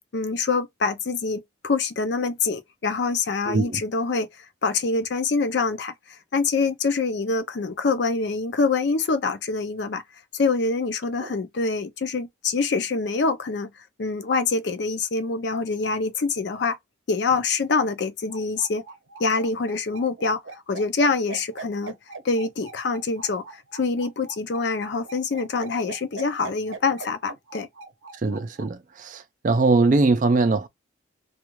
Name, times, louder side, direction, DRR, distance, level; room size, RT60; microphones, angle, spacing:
voice 1, 0.1-10.0 10.3-13.7 14.0-16.8 17.1-18.8 19.2-21.9 22.2-27.7, left 4 dB, 60° left, 0.5 m, -25 dB
voice 2, 3.5-3.8 11.2-11.3 28.2-30.7, right 3 dB, 40° right, 0.4 m, -21 dB
sound 1, 18.3-28.7, right 3 dB, 80° right, 0.7 m, -41 dB
2.3 x 2.3 x 3.0 m
head